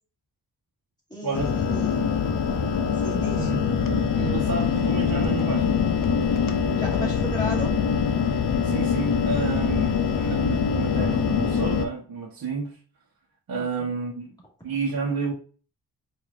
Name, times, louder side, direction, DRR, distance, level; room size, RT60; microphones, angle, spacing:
voice 1, 1.1-2.0 3.0-3.5 6.8-7.7 13.6-13.9, equal, 10° left, -4 dB, 1.8 m, -34 dB
sound 1, 1.3-11.9, left 6 dB, 55° left, 0.5 m, -24 dB
voice 2, 3.4-5.7 8.6-12.7 13.5-14.3 14.6-15.3, right 4 dB, 55° right, -2 dB, 0.9 m, -30 dB
4.8 x 2.6 x 2.4 m, 0.37 s
wide cardioid pair, 95°, 41 cm